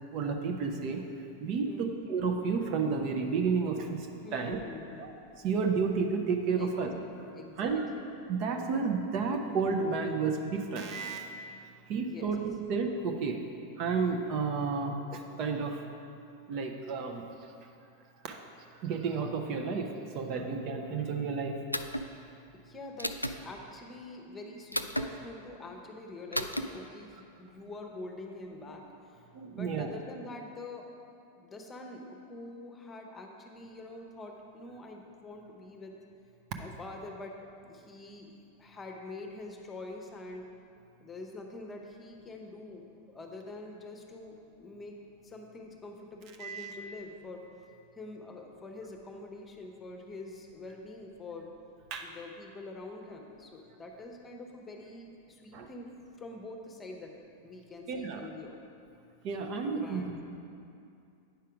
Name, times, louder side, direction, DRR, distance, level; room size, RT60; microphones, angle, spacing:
voice 1, 0.1-1.0 1.4-4.1 4.3-4.6 5.0-5.1 5.4-6.9 7.6-7.9 8.3-11.3 11.9-12.4 12.7-13.4 13.8-15.8 16.5-17.3 18.2-18.4 18.8-21.5 29.3-29.9 46.4-46.8 51.9-52.1 55.5-55.7 57.9-58.3 59.2-60.1, right 5 dB, 40° right, 4 dB, 0.7 m, -31 dB
voice 2, 4.2-5.1 6.6-6.7 7.4-8.0 12.0-12.3 22.5-30.9 31.4-35.9 36.6-37.4 37.6-40.5 41.0-47.5 47.9-51.5 52.0-55.9 56.2-57.1 57.4-58.6 59.7-60.1, left 2 dB, 20° left, 2 dB, 0.9 m, -45 dB
sound 1, 21.7-22.1 23.0-23.4 24.7-25.1 26.3-26.6, equal, 90° left, 0.3 m, -32 dB
9.1 x 5.6 x 5.0 m, 2.5 s
figure-of-eight pair, 90°, 0 cm